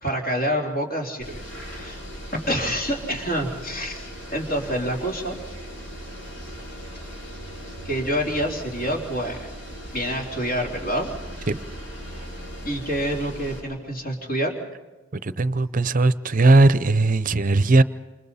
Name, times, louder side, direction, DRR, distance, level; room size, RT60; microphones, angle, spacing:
voice 1, 0.0-2.0 2.3-5.4 7.8-9.5 9.9-11.1 12.7-14.5, equal, 45° left, 3.6 m, -27 dB
sound 1, 1.2-13.6, equal, 65° left, 7.7 m, -38 dB
voice 2, 15.2-17.8, right 2 dB, 40° right, 0.7 m, -18 dB
28.0 x 27.5 x 4.2 m
head